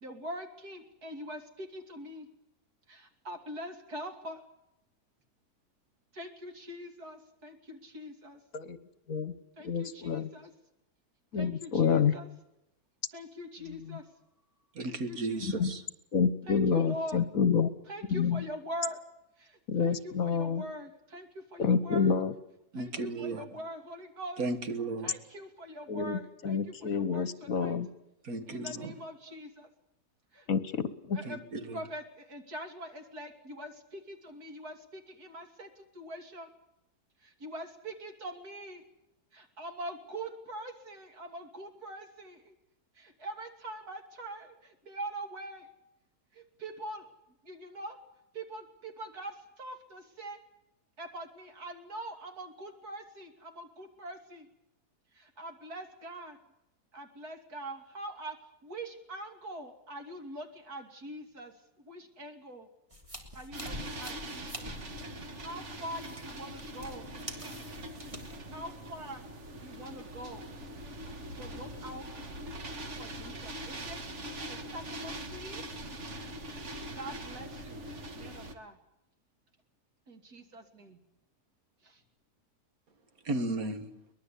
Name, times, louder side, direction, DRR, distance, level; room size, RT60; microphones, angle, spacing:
voice 1, 0.0-2.3 2.9-4.4 6.1-8.4 9.6-10.5 11.3-12.3 13.1-14.1 14.9-15.7 16.5-17.2 17.9-19.0 19.4-22.2 22.7-24.4 25.0-27.8 28.5-29.7 30.3-30.5 31.1-31.4 31.7-36.5 37.2-38.8 39.3-42.6 43.0-45.7 46.3-47.1 47.4-48.0 48.3-50.4 51.0-54.5 55.1-56.4 56.9-58.4 58.6-62.7 63.3-64.7 65.4-67.1 68.5-69.2 69.6-70.5 71.3-72.1 73.0-74.0 74.3-75.6 76.9-77.8 78.1-78.8 80.1-81.0 81.8-82.0, right 1 dB, 85° right, 3.4 m, -43 dB
voice 2, 9.6-10.3 11.3-12.1 13.9-14.0 15.6-15.7 16.1-17.7 18.1-18.4 19.7-20.6 21.6-22.3 25.9-27.9 30.5-31.2, left 6 dB, 65° left, 1.6 m, -28 dB
voice 3, 14.7-15.8 22.7-23.4 24.4-25.2 28.2-29.0 31.2-31.8 83.2-83.9, right 2 dB, 65° right, 2.1 m, -35 dB
sound 1, 62.9-68.4, left 1 dB, 20° right, 3.1 m, -46 dB
sound 2, 63.5-78.5, right 1 dB, 50° right, 2.1 m, -42 dB
23.0 x 20.0 x 8.4 m
omnidirectional pair, 1.6 m